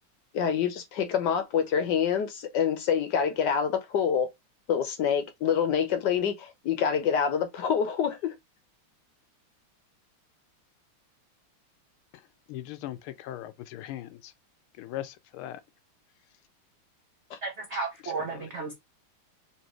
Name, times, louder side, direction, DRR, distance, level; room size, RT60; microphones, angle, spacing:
voice 1, 0.3-4.3 4.7-8.3 17.3-17.4, left 7 dB, 65° left, 1.2 m, -26 dB
voice 2, 12.5-14.3 14.8-15.6 18.3-18.5, left 13 dB, 80° left, 1.4 m, -39 dB
voice 3, 17.4-18.7, right 4 dB, 75° right, 0.6 m, -33 dB
4.3 x 3.0 x 3.0 m
omnidirectional pair, 2.3 m